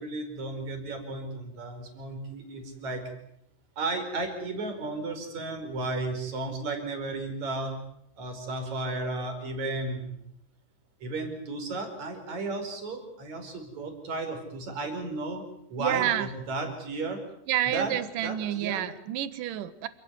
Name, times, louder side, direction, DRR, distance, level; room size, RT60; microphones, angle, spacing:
voice 1, 0.0-3.0 3.8-7.8 8.2-10.1 11.0-15.4 15.7-17.2 17.7-18.0 18.2-18.8, right 2 dB, 35° right, 5 dB, 5.9 m, -34 dB
voice 2, 15.8-16.3 17.5-19.9, right 12 dB, 65° right, 14 dB, 2.3 m, -29 dB
28.5 x 17.5 x 9.6 m, 0.74 s
omnidirectional pair, 5.5 m